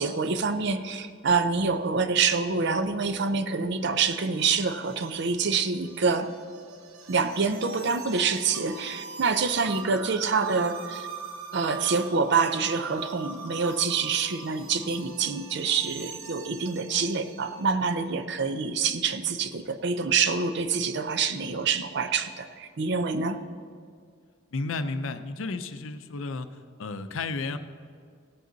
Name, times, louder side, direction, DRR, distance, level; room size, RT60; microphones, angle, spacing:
voice 1, 0.0-6.3 7.1-11.1 11.5-23.4, right 5 dB, 55° right, 10 dB, 0.6 m, -26 dB
sound 1, 3.3-17.9, right 5 dB, 85° right, 1.0 m, -42 dB
voice 2, 24.5-26.5 26.8-27.6, left 3 dB, 70° left, 10 dB, 0.6 m, -32 dB
17.0 x 7.7 x 4.0 m, 2.1 s
head